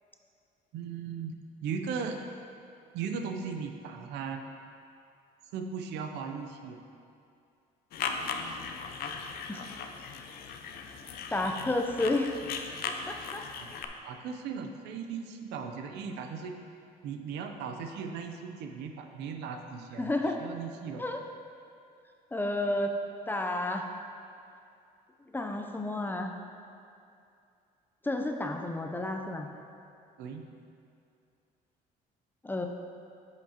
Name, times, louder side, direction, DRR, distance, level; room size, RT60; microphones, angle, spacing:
voice 1, 0.7-2.2 2.9-4.4 5.5-6.8 13.5-13.7 14.0-16.6 17.0-20.1 20.4-21.0 30.2-30.4, right 6 dB, 85° right, 5 dB, 0.7 m, -37 dB
sound 1, 7.9-13.9, left 5 dB, 65° left, 0.6 m, -38 dB
voice 2, 11.3-12.4 13.1-13.4 20.0-20.4 21.0-21.2 22.3-22.9 23.3-23.9 25.3-26.3 28.0-29.5 32.4-32.7, left 2 dB, 10° left, 3 dB, 0.6 m, -31 dB
10.5 x 5.8 x 2.9 m, 2.5 s
cardioid pair, 110°, 17 cm